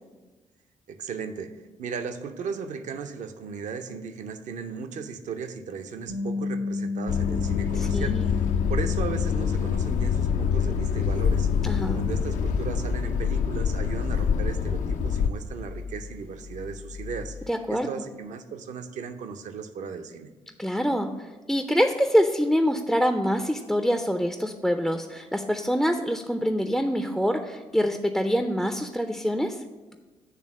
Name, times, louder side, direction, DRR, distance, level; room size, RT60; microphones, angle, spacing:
voice 1, 0.9-8.4 8.7-11.5 11.9-17.4 17.7-20.3, right 6 dB, 50° right, 8 dB, 0.7 m, -36 dB
Bass guitar, 6.1-12.3, left 3 dB, 75° right, 2.2 m, -34 dB
sound 1, 7.1-15.3, left 7 dB, 55° left, 0.5 m, -25 dB
voice 2, 7.7-8.3 11.6-12.0 17.5-17.9 20.6-29.6, equal, ahead, 6 dB, 0.5 m, -25 dB
sound 2, 11.0-13.3 14.0-17.5, left 4 dB, 85° left, 1.1 m, -43 dB
8.3 x 3.4 x 6.2 m, 1.3 s
figure-of-eight pair, 45°, 16 cm